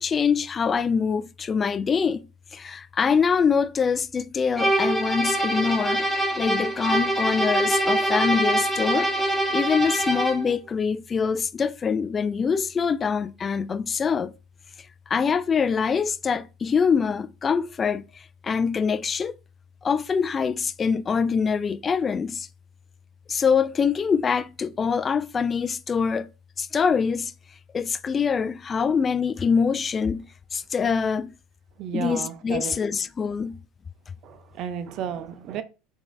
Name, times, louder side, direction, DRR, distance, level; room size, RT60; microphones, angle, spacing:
voice 1, 0.0-2.3 2.5-6.1 6.4-9.1 9.5-14.3 15.1-19.3 19.8-22.5 23.3-26.3 26.6-27.3 27.7-31.3 31.9-33.6, left 6 dB, 30° left, 0.3 m, -24 dB
sound 1, 4.6-10.5, right 1 dB, 5° left, 1.2 m, -24 dB
voice 2, 31.8-32.8 34.2-35.6, right 8 dB, 55° right, 0.5 m, -32 dB
3.8 x 3.5 x 2.5 m
hypercardioid pair, 80°, 0 cm